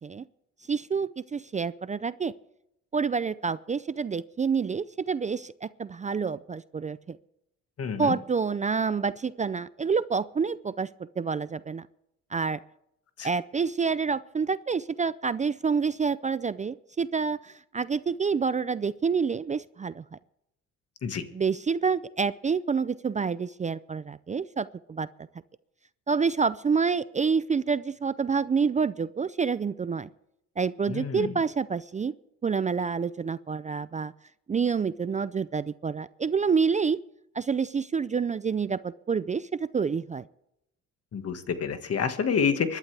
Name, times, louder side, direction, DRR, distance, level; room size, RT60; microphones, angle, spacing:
voice 1, 0.7-2.3 2.9-7.2 8.0-10.9 11.2-11.9 12.3-12.6 13.2-20.2 21.3-25.3 26.1-30.1 30.6-32.1 32.4-34.1 34.5-37.0 37.3-40.2, right 5 dB, 25° right, 15 dB, 0.4 m, -28 dB
voice 2, 7.8-8.2 13.2-13.3 21.0-21.2 30.9-31.3 41.1-42.8, left 6 dB, 50° left, 8 dB, 1.7 m, -28 dB
24.0 x 11.5 x 3.4 m, 0.81 s
cardioid pair, 90°, 30 cm